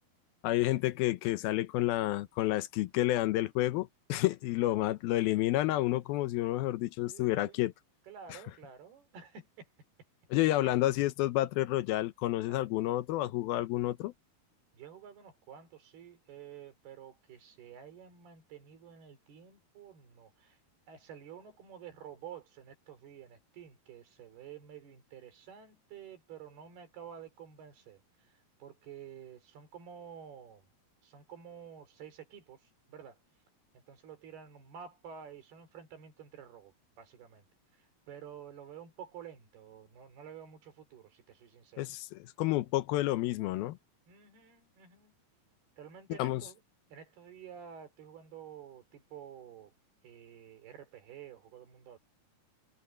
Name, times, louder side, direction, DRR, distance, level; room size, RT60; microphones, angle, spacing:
voice 1, 0.4-7.7 8.3-8.4 10.3-14.1 41.8-43.8 46.2-46.4, left 16 dB, 80° left, 2.6 m, -30 dB
voice 2, 7.1-7.6 8.1-9.7 10.6-10.8 12.5-12.7 14.7-20.6 20.9-28.0 28.6-30.7 31.0-33.2 33.9-37.5 37.8-41.9 44.1-45.1 45.8-46.6 46.9-49.7 50.0-52.0, right 8 dB, 85° right, 5.7 m, -50 dB
omnidirectional pair, 4.4 m